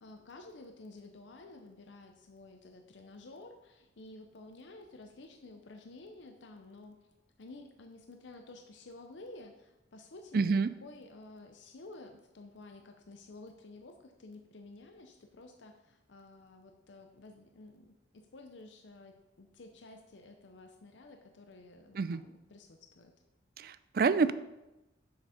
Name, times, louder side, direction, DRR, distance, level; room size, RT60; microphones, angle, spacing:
voice 1, 0.0-7.1 7.4-23.1, left 2 dB, 80° left, 5 dB, 0.6 m, -52 dB
voice 2, 10.3-10.7 21.9-22.2 23.6-24.3, right 4 dB, 50° right, 14 dB, 0.3 m, -27 dB
6.7 x 5.8 x 5.0 m, 0.98 s
head